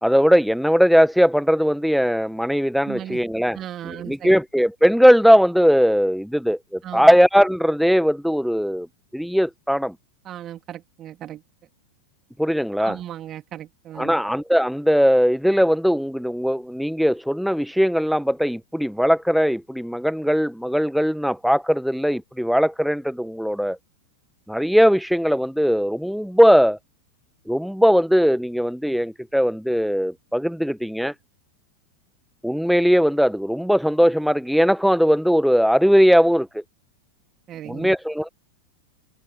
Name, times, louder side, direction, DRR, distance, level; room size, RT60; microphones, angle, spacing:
voice 1, 0.0-3.6 3.9-8.9 9.1-9.9 12.4-13.0 14.0-23.8 24.5-26.8 27.5-31.1 32.4-36.6 37.7-38.3, equal, ahead, 1.3 m, -19 dB
voice 2, 2.8-3.2 3.5-4.4 6.8-7.2 10.2-11.4 12.8-14.2 37.5-38.0, right 11 dB, 30° right, 2.8 m, -36 dB
figure-of-eight pair, 90°, 0 cm